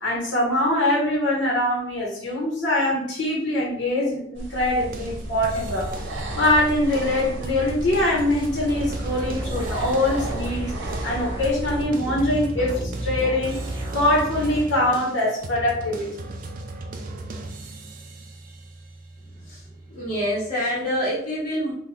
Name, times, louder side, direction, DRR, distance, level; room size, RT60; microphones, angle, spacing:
voice 1, 0.0-5.9 6.3-10.7 11.0-13.6 13.9-16.1, left 1 dB, 75° left, -4 dB, 0.9 m, -23 dB
sound 1, 4.3-11.8, right 1 dB, 80° right, 0.7 m, -34 dB
sound 2, 4.8-20.5, right 2 dB, 50° right, 0.4 m, -37 dB
sound 3, 8.7-14.6, right 1 dB, 25° right, 1.0 m, -32 dB
voice 2, 19.2-21.7, equal, 40° left, -8 dB, 1.0 m, -27 dB
3.2 x 2.2 x 3.6 m, 0.68 s
head